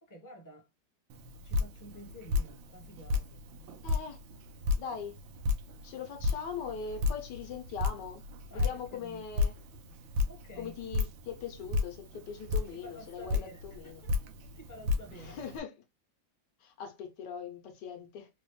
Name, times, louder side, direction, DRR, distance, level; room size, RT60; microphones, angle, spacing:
voice 1, 0.0-0.7 1.4-3.4 8.5-9.2 10.3-10.8 12.7-14.1 14.5-15.4, equal, 15° left, 0.9 m, -50 dB
Drip, 1.1-15.6, left 4 dB, 85° right, 1.4 m, -34 dB
voice 2, 3.8-4.2 4.8-5.2 5.8-8.2 8.5-9.5 10.6-14.0 15.1-15.7 16.6-18.3, left 6 dB, 70° left, 1.5 m, -41 dB
4.0 x 2.5 x 3.1 m
omnidirectional pair, 2.0 m